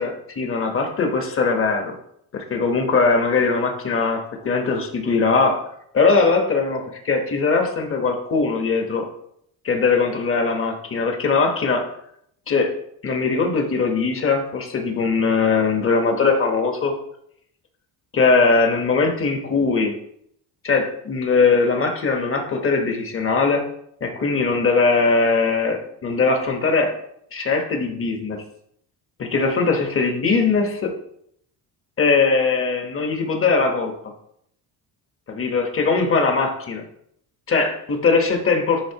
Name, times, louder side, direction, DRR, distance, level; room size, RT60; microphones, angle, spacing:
voice 1, 0.0-1.9 2.3-5.6 5.9-9.1 9.6-11.9 12.5-12.7 13.0-16.9 18.1-19.9 20.6-23.7 24.0-26.9 27.3-28.4 29.2-30.9 32.0-33.9 35.3-36.8 37.5-38.9, left 4 dB, 35° left, 3 dB, 1.2 m, -20 dB
10.0 x 3.8 x 2.9 m, 0.72 s
cardioid pair, 120°, 40 cm